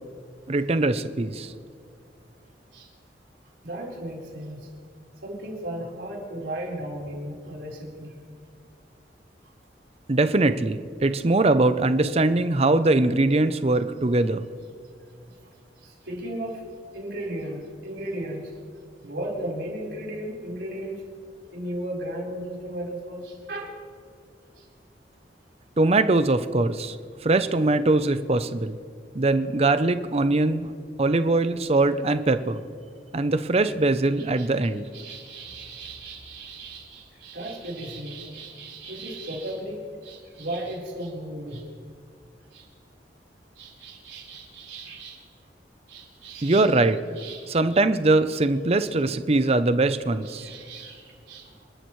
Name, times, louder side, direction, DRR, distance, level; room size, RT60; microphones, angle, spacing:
voice 1, 0.5-1.5 10.1-14.4 25.8-27.0 27.2-28.8 29.1-32.6 33.1-34.9 46.4-47.0 47.5-50.5, right 2 dB, 35° right, 11 dB, 0.6 m, -22 dB
voice 2, 3.6-4.7 5.2-8.2 9.4-9.5 15.3-15.5 15.8-16.7 16.9-18.5 19.0-21.0 21.5-23.8 24.6-24.7 34.2-34.5 34.9-41.7 42.5-42.7 43.6-45.2 45.9-46.7 47.1-47.5 50.2-51.6, right 1 dB, 80° right, -3 dB, 4.3 m, -36 dB
28.0 x 12.5 x 3.2 m, 2.3 s
head